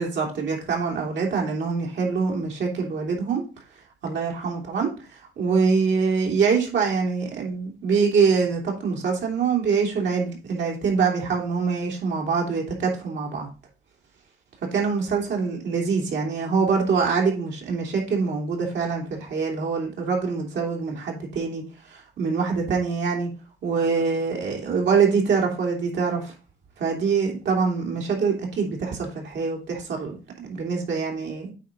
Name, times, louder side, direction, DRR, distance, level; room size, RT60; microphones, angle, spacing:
voice 1, 0.0-3.4 4.0-4.9 5.4-13.5 14.7-23.3 23.6-26.3 26.8-31.5, right 5 dB, 65° right, -1 dB, 2.9 m, -24 dB
9.1 x 4.2 x 3.9 m, 0.34 s
cardioid pair, 90°, 20 cm